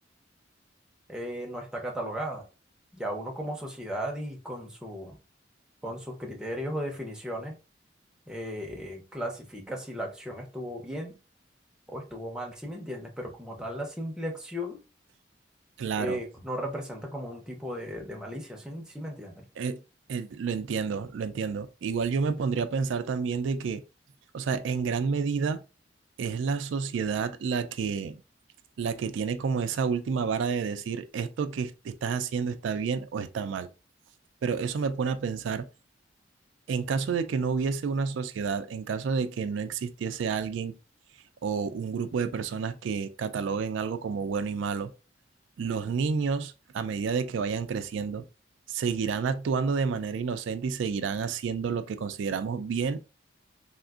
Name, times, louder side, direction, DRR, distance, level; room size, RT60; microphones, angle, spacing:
voice 1, 1.1-2.4 2.9-5.2 5.8-7.6 8.3-11.2 11.9-14.8 16.0-19.4, equal, 5° right, 0.6 m, -36 dB
voice 2, 15.8-16.2 19.6-19.8 20.1-23.8 24.3-25.6 26.2-28.2 28.8-33.7 34.4-35.7 36.7-40.7 41.4-44.9 45.6-48.3 48.7-53.0, right 5 dB, 85° right, 0.3 m, -29 dB
3.6 x 2.4 x 2.3 m
head